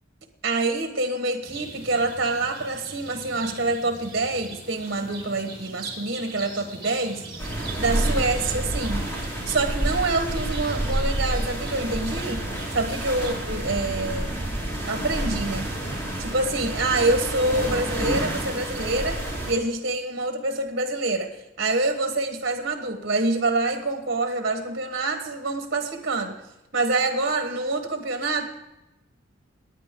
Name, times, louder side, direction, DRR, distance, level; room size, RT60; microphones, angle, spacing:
voice 1, 0.4-7.2 7.8-9.1 9.4-12.4 12.7-14.4 14.8-15.7 16.2-19.2 19.5-21.3 21.6-26.4 26.7-28.5, right 2 dB, 55° right, 6 dB, 1.3 m, -26 dB
sound 1, 1.4-13.3, right 2 dB, 25° right, 3.9 m, -40 dB
sound 2, 7.4-19.5, right 1 dB, 15° left, 3.5 m, -29 dB
19.5 x 9.2 x 3.8 m, 0.97 s
head